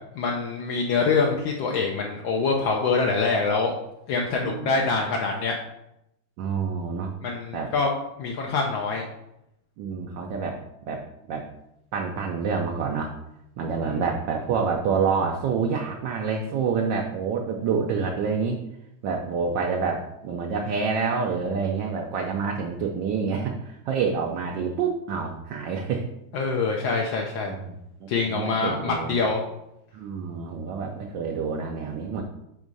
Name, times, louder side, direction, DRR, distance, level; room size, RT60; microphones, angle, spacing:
voice 1, 0.1-3.8 4.1-5.6 7.2-7.9 8.2-9.0 13.8-14.0 26.3-27.5 28.1-29.4, left 4 dB, 75° left, 0 dB, 1.4 m, -25 dB
voice 2, 4.4-4.9 6.4-7.1 7.5-7.7 9.8-10.6 10.9-11.4 11.9-13.1 13.6-18.6 19.0-26.0 27.4-29.2 29.9-32.2, right 5 dB, 70° right, 1 dB, 1.3 m, -27 dB
6.3 x 3.6 x 5.2 m, 0.84 s
omnidirectional pair, 2.2 m